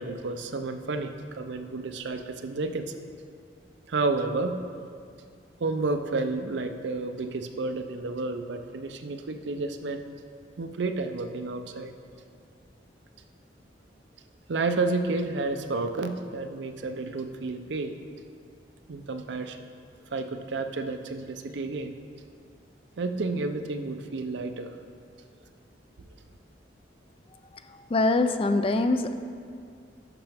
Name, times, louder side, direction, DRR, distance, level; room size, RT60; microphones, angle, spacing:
voice 1, 0.0-2.9 3.9-4.6 5.6-10.0 10.6-11.9 14.5-17.9 18.9-19.6 20.1-22.0 23.0-24.8, right 3 dB, 75° right, 7 dB, 0.5 m, -31 dB
voice 2, 27.9-29.1, left 2 dB, 30° left, 8 dB, 0.4 m, -23 dB
12.0 x 5.8 x 3.5 m, 2.3 s
head